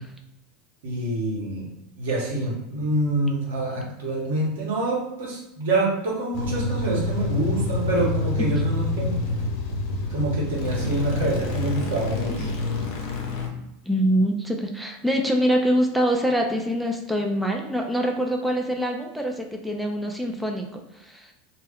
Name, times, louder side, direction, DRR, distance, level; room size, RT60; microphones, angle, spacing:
voice 1, 0.8-1.7 2.0-9.1 10.1-12.5, right 1 dB, 80° right, -3 dB, 0.9 m, -26 dB
sound 1, 6.3-13.5, left 2 dB, 60° left, 0.7 m, -27 dB
voice 2, 13.9-21.3, equal, ahead, 1 dB, 0.4 m, -24 dB
2.2 x 2.1 x 3.4 m, 0.88 s
hypercardioid pair, 100°, 0 cm